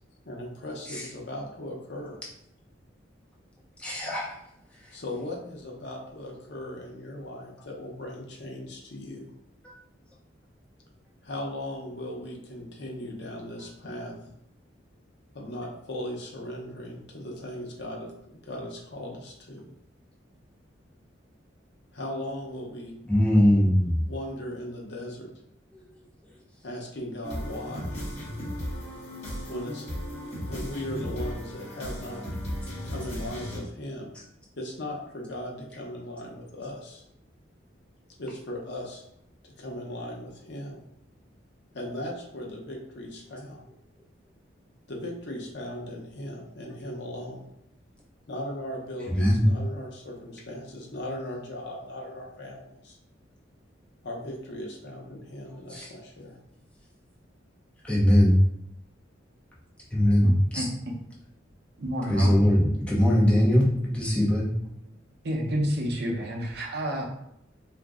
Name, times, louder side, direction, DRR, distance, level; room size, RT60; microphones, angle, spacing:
voice 1, 0.3-2.2 4.9-9.3 11.2-14.1 15.3-19.7 21.9-22.9 24.0-25.3 26.6-28.0 29.5-29.9 30.5-32.3 32.8-34.1 34.6-37.0 38.2-39.0 39.6-40.8 41.7-43.6 44.9-47.5 48.3-53.0 54.0-56.4, left 1 dB, 60° left, -1 dB, 0.6 m, -38 dB
voice 2, 3.8-4.4 9.6-9.7 23.1-24.0 49.1-49.5 55.7-55.9 57.8-58.4 59.9-60.6 62.1-62.6 62.9-64.5, equal, 5° left, -6 dB, 0.6 m, -21 dB
sound 1, 27.2-33.6, equal, 35° left, 0.9 m, -35 dB
voice 3, 60.2-60.9 61.8-63.0 63.4-64.1 64.8-64.9 65.2-67.0, equal, 60° right, -1 dB, 0.6 m, -31 dB
2.5 x 2.0 x 3.5 m, 0.75 s
head